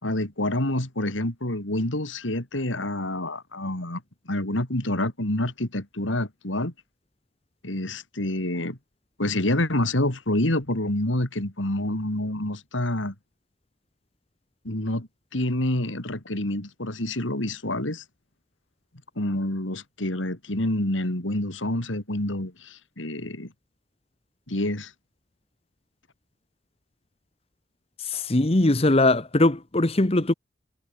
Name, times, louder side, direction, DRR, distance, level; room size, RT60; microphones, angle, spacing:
voice 1, 0.0-6.7 7.6-8.8 9.2-13.2 14.7-18.0 19.2-23.5 24.5-24.9, left 1 dB, 85° left, 3.5 m, -27 dB
voice 2, 28.0-30.3, left 2 dB, 30° left, 1.0 m, -21 dB
head